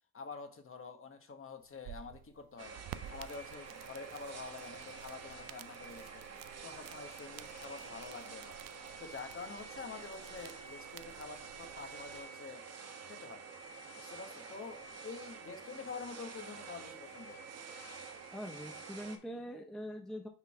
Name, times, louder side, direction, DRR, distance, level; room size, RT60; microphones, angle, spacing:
voice 1, 0.1-2.7 3.1-6.2 6.6-8.6 9.0-11.5 11.7-12.6 13.1-13.4 14.0-17.4, left 4 dB, 35° left, 7 dB, 1.1 m, -47 dB
sound 1, 1.6-12.2, right 11 dB, 65° right, 0.5 m, -53 dB
sound 2, 2.6-19.2, right 5 dB, 40° right, 1.1 m, -48 dB
voice 2, 18.3-20.3, equal, ahead, 4 dB, 0.5 m, -43 dB
5.8 x 3.8 x 4.6 m, 0.42 s
cardioid pair, 90°, 38 cm